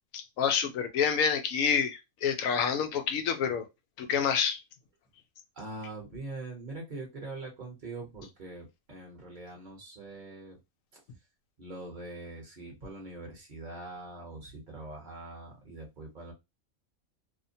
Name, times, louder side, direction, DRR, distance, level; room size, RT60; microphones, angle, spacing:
voice 1, 0.1-3.7 4.0-4.6, left 7 dB, 90° left, 1.0 m, -28 dB
voice 2, 5.5-10.6 10.9-11.0 11.6-16.3, right 2 dB, 40° right, 1.0 m, -43 dB
2.8 x 2.1 x 2.6 m
omnidirectional pair, 1.4 m